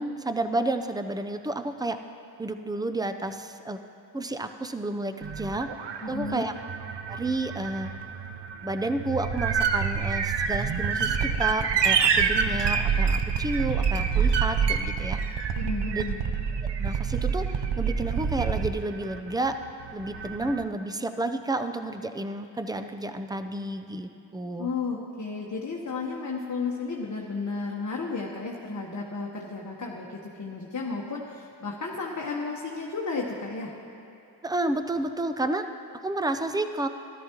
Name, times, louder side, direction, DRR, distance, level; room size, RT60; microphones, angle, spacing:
voice 1, 0.0-2.0 2.4-3.8 4.1-5.7 6.1-6.5 7.1-7.9 8.6-15.2 15.9-16.0 16.8-19.6 19.9-24.7 34.4-35.7 36.0-36.9, right 2 dB, 10° right, 8 dB, 0.5 m, -31 dB
sound 1, 5.2-20.6, right 6 dB, 70° right, 0.7 m, -27 dB
voice 2, 6.0-6.5 15.5-16.3 24.6-33.7, left 4 dB, 40° left, -2 dB, 1.1 m, -33 dB
13.5 x 12.0 x 2.9 m, 2.8 s
cardioid pair, 60°, 45 cm